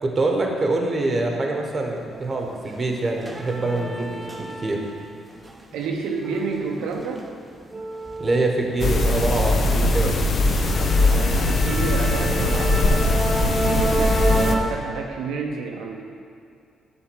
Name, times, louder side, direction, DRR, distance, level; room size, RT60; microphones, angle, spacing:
voice 1, 0.0-4.8 8.2-10.2, right 2 dB, 30° right, 2 dB, 1.0 m, -24 dB
sound 1, 2.1-2.3 2.6-5.0 5.4-9.1 9.5-9.8 10.2-10.3 10.6-14.6, right 2 dB, 15° right, 0.6 m, -29 dB
voice 2, 5.7-7.2 11.0-16.0, right 4 dB, 90° right, 1 dB, 0.6 m, -30 dB
sound 2, 8.8-14.6, left 2 dB, 50° left, 0.6 m, -20 dB
7.2 x 3.4 x 6.2 m, 2.4 s
cardioid pair, 90°, 0 cm